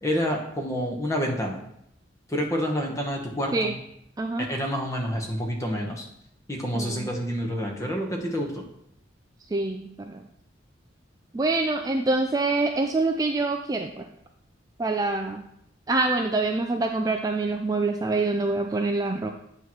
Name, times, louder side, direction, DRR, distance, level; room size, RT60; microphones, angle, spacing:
voice 1, 0.0-1.6 2.3-3.7 4.5-6.1 6.5-8.6, equal, 15° left, 1 dB, 1.0 m, -28 dB
voice 2, 4.2-4.5 6.7-7.1 9.5-10.2 11.3-14.1 14.8-15.5 15.9-19.3, right 3 dB, 20° right, 4 dB, 0.3 m, -25 dB
8.3 x 3.1 x 5.6 m, 0.75 s
head